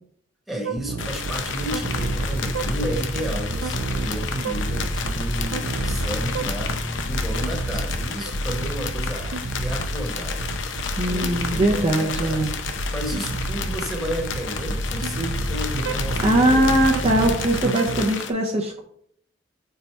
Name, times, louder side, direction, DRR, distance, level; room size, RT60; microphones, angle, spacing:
voice 1, 0.5-6.8 7.1-10.5 11.1-16.8, right 1 dB, ahead, -1 dB, 1.2 m, -32 dB
sound 1, 0.6-18.1, right 4 dB, 80° right, 0.5 m, -32 dB
sound 2, 1.0-18.3, left 6 dB, 75° left, 0.6 m, -32 dB
sound 3, 1.7-17.4, equal, 35° left, 0.5 m, -31 dB
voice 2, 11.0-12.5 16.2-18.8, right 1 dB, 35° right, 0 dB, 0.7 m, -21 dB
4.6 x 4.0 x 5.6 m, 0.67 s
head